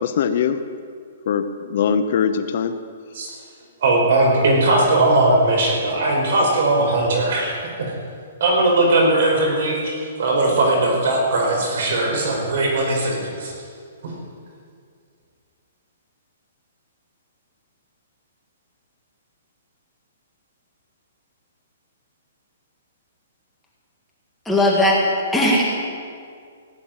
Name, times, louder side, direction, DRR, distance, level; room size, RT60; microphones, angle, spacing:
voice 1, 0.0-0.6 1.3-2.7, left 7 dB, 45° left, 10 dB, 0.8 m, -21 dB
voice 2, 3.8-7.9 8.4-13.5 14.0-14.1, right 2 dB, 55° right, 0 dB, 5.0 m, -19 dB
voice 3, 24.5-25.0 25.3-25.6, left 1 dB, 5° left, -5 dB, 1.7 m, -17 dB
17.0 x 8.8 x 8.8 m, 2.2 s
hypercardioid pair, 170°, 0 cm